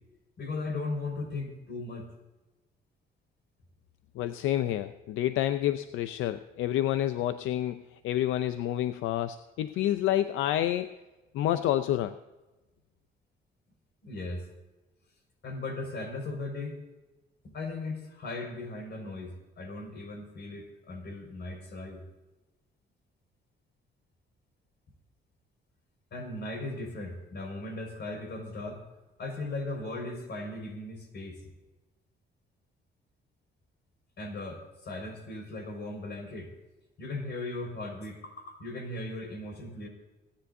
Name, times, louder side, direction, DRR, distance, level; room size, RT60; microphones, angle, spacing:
voice 1, 0.4-2.1 14.0-14.5 15.4-16.8 17.4-22.0 26.1-28.8 29.2-31.4 34.2-36.5 37.0-39.9, left 2 dB, 55° left, 3 dB, 5.2 m, -37 dB
voice 2, 4.2-10.9 11.3-12.2, left 12 dB, 90° left, 11 dB, 0.5 m, -29 dB
27.5 x 10.0 x 2.7 m, 1.1 s
cardioid pair, 90°, 20 cm